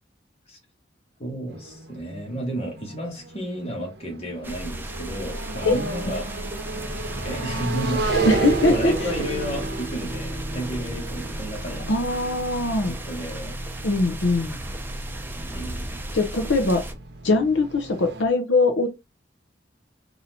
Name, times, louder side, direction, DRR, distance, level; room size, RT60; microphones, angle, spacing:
voice 1, 1.2-6.3 7.2-8.3 8.7-11.9 12.9-13.6 15.5-15.9, equal, 35° left, 1.8 m, -32 dB
sound 1, 1.5-18.2, right 2 dB, 60° right, 0.8 m, -36 dB
sound 2, 4.4-16.9, right 1 dB, 10° right, 0.7 m, -34 dB
voice 2, 8.0-8.9 11.9-12.9 13.8-14.6 16.1-16.8 17.2-18.9, left 2 dB, 80° left, 0.8 m, -21 dB
sound 3, 8.1-18.3, right 5 dB, 10° left, 2.5 m, -33 dB
4.2 x 3.0 x 4.0 m
head